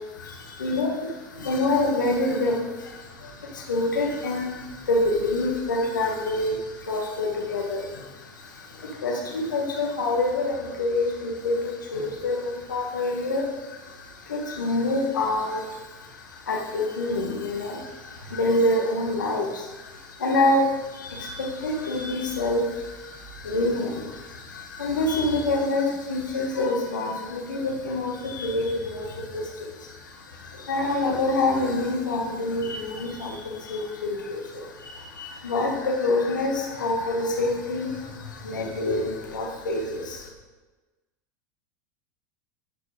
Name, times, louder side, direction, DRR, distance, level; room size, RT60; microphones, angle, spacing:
voice 1, 0.2-0.9 1.3-40.3, left 2 dB, 90° left, -1 dB, 2.1 m, -27 dB
10.5 x 5.1 x 5.2 m, 1.2 s
hypercardioid pair, 90°, 10 cm